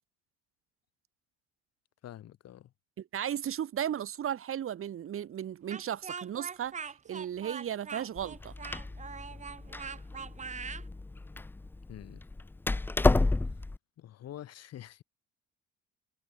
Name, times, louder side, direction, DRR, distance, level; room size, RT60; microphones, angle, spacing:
voice 1, 2.0-2.7 11.9-12.2 14.0-15.0, left 12 dB, 55° left, 6.6 m, -46 dB
voice 2, 3.0-8.5, right 10 dB, 45° right, 1.9 m, -35 dB
Speech, 5.7-10.9, right 5 dB, 25° right, 1.0 m, -42 dB
Door, 8.2-13.8, left 2 dB, 5° left, 0.4 m, -31 dB
supercardioid pair, 80°, 29 cm